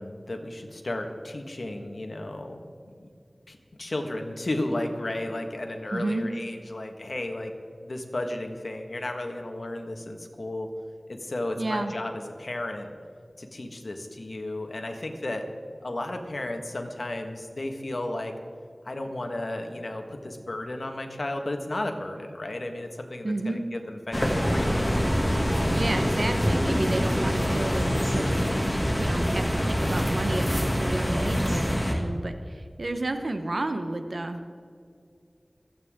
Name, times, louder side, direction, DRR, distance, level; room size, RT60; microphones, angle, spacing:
voice 1, 0.0-2.6 3.0-3.1 3.5-7.5 7.8-10.7 11.1-12.1 12.4-13.0 13.4-15.4 15.8-18.3 18.8-24.9, left 1 dB, 75° left, 4 dB, 1.7 m, -33 dB
voice 2, 5.9-6.3 11.6-11.9 23.2-23.6 25.7-28.4 29.0-34.4, right 2 dB, 75° right, 7 dB, 1.2 m, -31 dB
sound 1, 24.1-31.9, equal, 15° left, 2.5 m, -25 dB
27.5 x 9.3 x 3.8 m, 2.3 s
wide cardioid pair, 50°, 0 cm